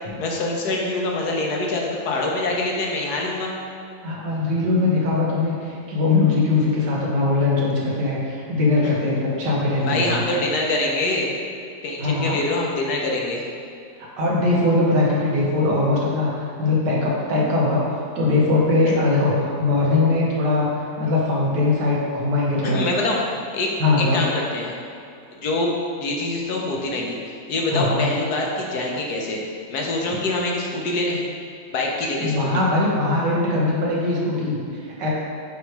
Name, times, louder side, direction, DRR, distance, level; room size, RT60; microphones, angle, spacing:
voice 1, 0.2-3.5 9.8-11.3 11.8-13.4 18.9-19.0 22.6-23.2 23.5-23.7 24.0-24.7 25.4-25.7 26.0-29.4 29.7-31.2 31.7-32.5, left 2 dB, 70° left, -1 dB, 1.4 m, -25 dB
voice 2, 4.0-10.4 12.0-12.4 14.2-16.3 16.6-17.8 18.2-22.9 23.8-24.3 27.7-28.1 32.2-35.1, left 2 dB, 85° right, -4 dB, 1.8 m, -21 dB
8.1 x 3.2 x 4.6 m, 2.4 s
omnidirectional pair, 1.8 m